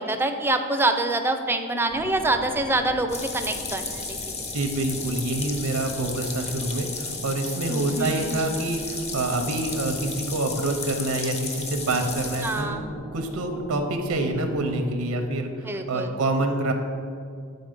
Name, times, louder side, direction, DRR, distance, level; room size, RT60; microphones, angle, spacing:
voice 1, 0.0-4.2 7.7-8.3 12.4-12.9 15.6-16.1, right 2 dB, 10° right, 6 dB, 0.4 m, -26 dB
sound 1, 1.9-14.7, left 1 dB, 60° left, 1.2 m, -43 dB
sound 2, 3.1-12.6, left 4 dB, 30° left, 0.7 m, -34 dB
voice 2, 4.5-12.8 13.1-16.7, right 2 dB, 85° right, 6 dB, 0.6 m, -27 dB
8.5 x 4.0 x 5.1 m, 2.3 s
head